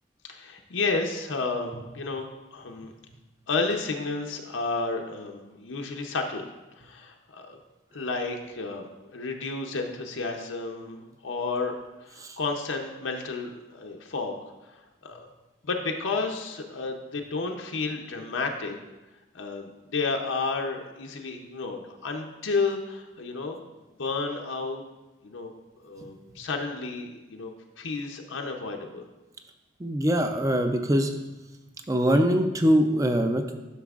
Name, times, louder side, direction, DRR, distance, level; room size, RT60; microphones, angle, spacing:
voice 1, 0.2-2.9 3.5-6.5 6.8-7.6 7.9-11.7 12.0-14.4 14.6-15.3 15.6-18.8 19.3-23.6 24.0-24.8 25.2-27.5 27.8-29.0, left 3 dB, 85° left, 2 dB, 0.7 m, -31 dB
voice 2, 29.8-31.1 31.9-33.6, equal, 15° right, 6 dB, 0.5 m, -23 dB
11.5 x 6.0 x 2.4 m, 1.1 s
head